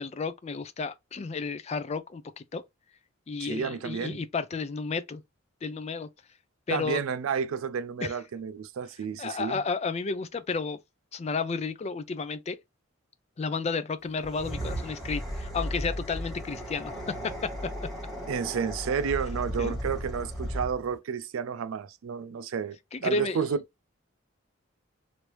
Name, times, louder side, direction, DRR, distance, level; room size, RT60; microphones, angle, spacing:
voice 1, 0.0-2.6 3.3-5.2 5.6-6.1 6.7-7.0 8.0-8.1 9.2-10.8 11.1-12.6 13.4-17.3 19.6-19.7 22.9-23.4, left 4 dB, 30° left, 0.3 m, -32 dB
voice 2, 3.4-4.2 6.7-9.6 18.3-23.6, right 6 dB, 90° right, 0.4 m, -31 dB
sound 1, 14.2-20.9, equal, ahead, 1.4 m, -35 dB
3.1 x 2.6 x 3.0 m
head